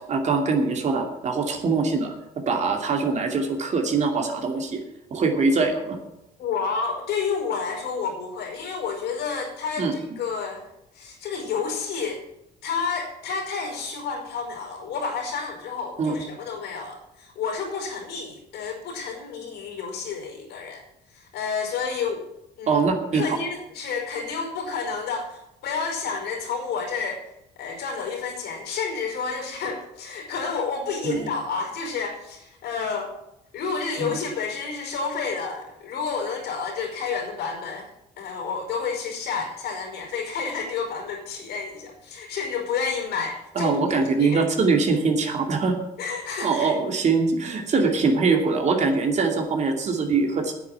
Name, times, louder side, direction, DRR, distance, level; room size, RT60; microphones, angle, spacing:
voice 1, 0.1-2.1 2.5-4.8 5.1-6.0 9.8-9.9 16.0-16.1 22.7-23.2 31.0-31.3 34.0-34.2 43.5-45.8 46.4-50.5, right 4 dB, 45° right, 3 dB, 2.6 m, -23 dB
voice 2, 6.4-10.7 10.9-12.2 12.6-20.8 21.1-22.2 22.6-22.8 23.1-27.2 27.6-33.1 33.5-44.4 46.0-46.7, left 5 dB, 75° left, 2 dB, 4.9 m, -30 dB
9.5 x 8.4 x 8.9 m, 0.87 s
cardioid pair, 110°, 17 cm